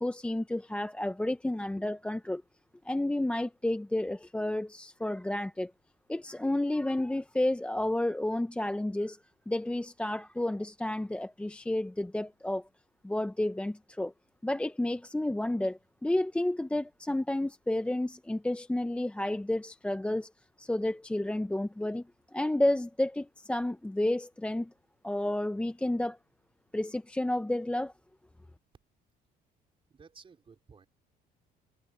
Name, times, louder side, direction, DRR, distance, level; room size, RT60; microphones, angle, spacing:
voice 1, 0.0-2.4 2.8-5.7 6.1-9.2 9.5-12.7 13.0-14.1 14.4-20.3 20.6-22.1 22.3-24.7 25.0-26.2 26.7-27.9, left 1 dB, 5° left, 0.7 m, -31 dB
voice 2, 29.9-30.9, right 5 dB, 30° right, 4.1 m, -55 dB
cardioid pair, 110°, 17 cm